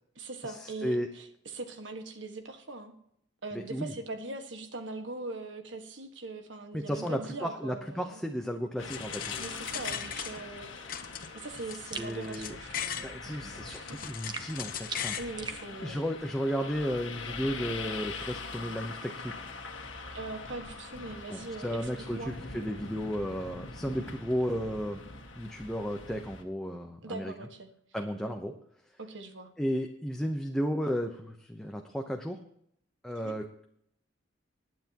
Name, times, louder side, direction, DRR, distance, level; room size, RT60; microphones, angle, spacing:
voice 1, 0.1-2.9 3.4-8.2 9.4-10.7 11.3-14.0 15.2-16.0 20.1-22.3 27.0-27.7 28.2-28.3 29.0-29.5 33.1-33.3, right 3 dB, 75° right, 6 dB, 1.6 m, -41 dB
voice 2, 3.5-3.9 6.7-9.4 12.0-12.5 13.0-15.2 15.8-19.3 21.3-25.0 25.4-27.3 27.9-28.5 29.6-32.4 33.0-33.6, equal, 5° left, 2 dB, 0.8 m, -33 dB
sound 1, 8.8-26.4, left 4 dB, 80° left, 1.7 m, -43 dB
sound 2, 8.9-10.6 10.9-13.1 13.5-15.3, left 9 dB, 45° left, 1.0 m, -39 dB
sound 3, 11.9-12.2 14.3-15.6, right 4 dB, 20° right, 1.0 m, -40 dB
20.0 x 9.4 x 3.0 m, 0.70 s
head